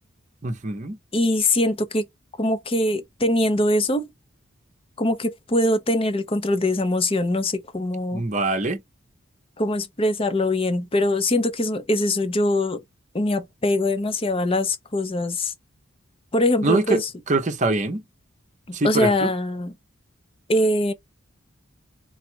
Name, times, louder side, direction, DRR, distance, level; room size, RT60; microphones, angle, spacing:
voice 1, 0.4-1.0 8.1-8.8 16.6-17.0 17.3-18.0 18.7-19.3, right 2 dB, 35° right, 0.8 m, -23 dB
voice 2, 1.1-2.0 2.4-4.1 5.0-8.2 9.6-12.8 13.1-15.5 16.3-17.1 18.7-19.7 20.5-20.9, left 1 dB, 25° left, 0.7 m, -22 dB
4.0 x 2.4 x 4.5 m
head